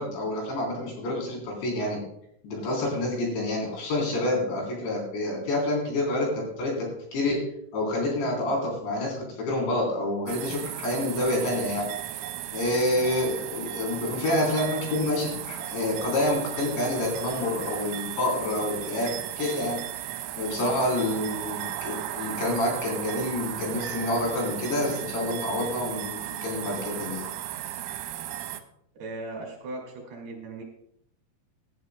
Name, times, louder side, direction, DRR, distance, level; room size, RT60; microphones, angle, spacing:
voice 1, 0.0-2.0 2.4-7.4 7.7-12.2 12.5-19.8 20.4-27.2, left 1 dB, 60° left, -1 dB, 5.8 m, -28 dB
sound 1, 10.3-28.6, right 12 dB, 90° right, 3.2 m, -35 dB
voice 2, 29.0-30.6, right 2 dB, 60° right, 0 dB, 4.0 m, -38 dB
17.5 x 11.0 x 2.2 m, 0.73 s
omnidirectional pair, 5.7 m